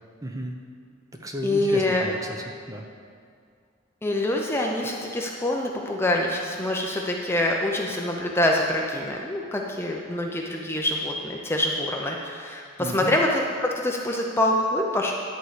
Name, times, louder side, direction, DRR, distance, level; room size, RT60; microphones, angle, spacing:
voice 1, 0.2-0.6 1.2-2.9 12.8-13.1, right 1 dB, 15° right, 2 dB, 0.8 m, -34 dB
voice 2, 1.4-2.1 4.0-15.1, left 1 dB, 10° left, 0 dB, 0.6 m, -25 dB
11.0 x 4.6 x 8.1 m, 2.2 s
head